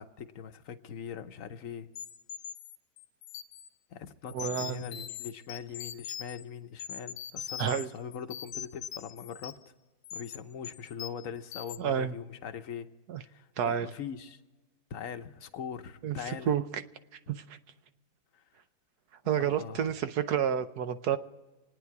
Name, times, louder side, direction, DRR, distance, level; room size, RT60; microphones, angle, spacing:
voice 1, 0.0-1.9 3.9-9.6 10.1-12.9 13.2-14.4 14.9-16.5 18.3-18.4 19.4-20.0, left 7 dB, 60° left, 9 dB, 1.1 m, -41 dB
sound 1, 2.0-3.7 4.3-6.4 6.8-7.9 8.1-9.7 10.0-10.4 10.6-11.3 11.5-11.8, left 9 dB, 75° left, 1.4 m, -41 dB
voice 2, 4.3-4.9 7.6-7.9 11.8-12.1 13.1-13.2 13.6-13.9 16.0-16.6 17.3-17.4 19.3-21.2, right 9 dB, 70° right, 10 dB, 1.2 m, -29 dB
27.5 x 9.6 x 4.7 m, 1.2 s
omnidirectional pair, 1.8 m